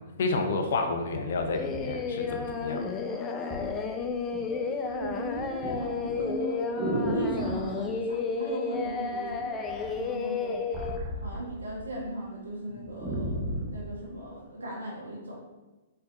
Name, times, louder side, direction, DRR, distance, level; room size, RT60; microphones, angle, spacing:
voice 1, 0.2-2.9, left 3 dB, 60° left, 4 dB, 0.7 m, -30 dB
sound 1, 1.4-2.9 3.5-3.7 4.1-4.5 4.8-7.7 8.8-9.3 9.7-11.9 12.3-12.4 12.7-13.8 14.5-14.6, right 1 dB, 15° right, 1.1 m, -34 dB
Singing, 1.5-11.0, left 5 dB, 20° left, 0.4 m, -32 dB
voice 2, 2.6-3.3 3.5-3.7 4.5-10.7 11.2-13.4 13.7-15.4, right 1 dB, 80° right, -3 dB, 1.4 m, -38 dB
4.2 x 3.9 x 2.7 m, 1.1 s
figure-of-eight pair, 120°, 0 cm